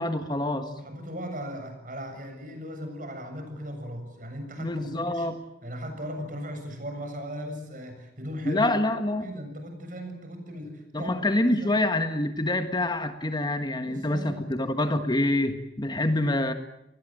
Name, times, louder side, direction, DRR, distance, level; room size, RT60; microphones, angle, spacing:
voice 1, 0.0-0.7 4.6-5.4 8.4-9.3 10.9-16.5, left 1 dB, 25° left, 8 dB, 1.5 m, -26 dB
voice 2, 0.8-5.3 5.6-8.7 9.2-11.2 11.5-11.8 13.8-14.5, equal, 50° right, 6 dB, 7.2 m, -37 dB
29.0 x 20.0 x 8.9 m, 0.86 s
head